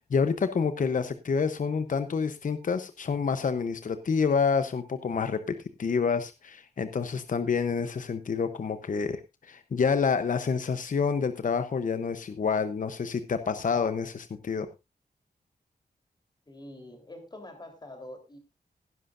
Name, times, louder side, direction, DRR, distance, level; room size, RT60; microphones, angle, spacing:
voice 1, 0.1-14.7, left 5 dB, 55° left, 0.8 m, -28 dB
voice 2, 16.5-18.4, left 1 dB, 25° left, 3.6 m, -45 dB
17.0 x 11.0 x 2.5 m
wide cardioid pair, 165°, 16 cm